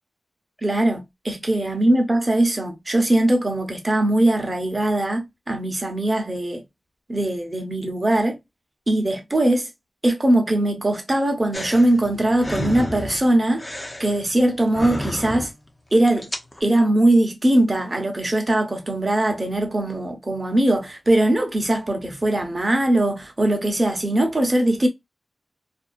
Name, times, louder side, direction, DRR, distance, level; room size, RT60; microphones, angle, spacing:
voice 1, 0.6-6.6 7.1-8.4 8.9-9.7 10.0-13.6 14.0-15.5 15.9-16.3 16.6-24.9, right 1 dB, 30° right, 0.8 m, -21 dB
sound 1, 11.5-15.7 16.0-16.6, left 1 dB, 20° left, 0.6 m, -32 dB
2.5 x 2.3 x 2.3 m
wide cardioid pair, 90°, 0 cm